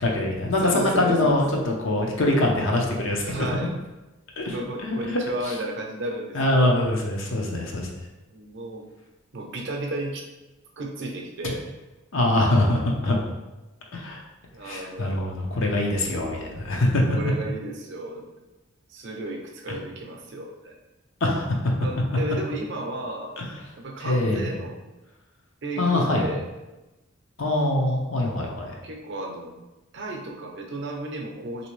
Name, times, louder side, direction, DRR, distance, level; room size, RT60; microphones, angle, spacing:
voice 1, 0.0-3.5 4.4-4.5 4.8-5.2 5.5-5.6 6.3-7.9 12.1-13.2 13.9-14.2 14.6-17.2 21.2-21.5 23.4-23.5 24.0-24.5 25.8-26.3 27.4-28.7, left 1 dB, 70° left, 0 dB, 0.7 m, -23 dB
voice 2, 0.6-1.4 3.3-3.8 4.5-6.8 8.3-8.9 9.3-10.3 10.8-11.6 14.5-15.3 17.2-18.3 18.9-20.8 21.8-23.4 23.8-24.7 25.6-26.4 28.8-29.5 29.9-31.7, right 1 dB, 55° right, 1 dB, 0.5 m, -33 dB
3.4 x 2.7 x 3.1 m, 1.1 s
head